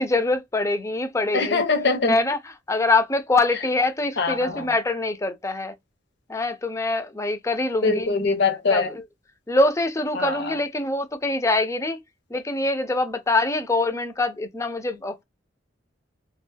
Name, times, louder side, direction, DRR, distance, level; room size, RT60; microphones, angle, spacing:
voice 1, 0.0-1.6 2.1-5.8 6.3-8.1 8.7-9.0 9.5-12.0 12.3-15.2, left 2 dB, 15° left, 0.4 m, -24 dB
voice 2, 1.3-2.1 4.2-4.6 7.8-8.9 10.1-10.5, left 4 dB, 65° left, 0.7 m, -22 dB
2.3 x 2.2 x 3.3 m
head